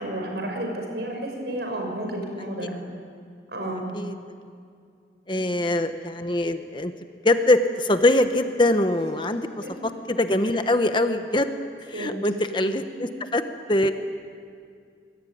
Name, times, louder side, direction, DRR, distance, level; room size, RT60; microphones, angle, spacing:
voice 1, 0.0-2.8 3.5-3.9 5.3-5.4 9.3-9.7 11.9-12.4 12.9-13.1, right 1 dB, 65° right, 2 dB, 6.1 m, -32 dB
voice 2, 5.3-6.9 7.2-9.5 10.1-11.5 11.9-13.4 13.7-13.9, left 1 dB, 25° left, 8 dB, 1.0 m, -22 dB
25.5 x 21.5 x 9.4 m, 2.2 s
head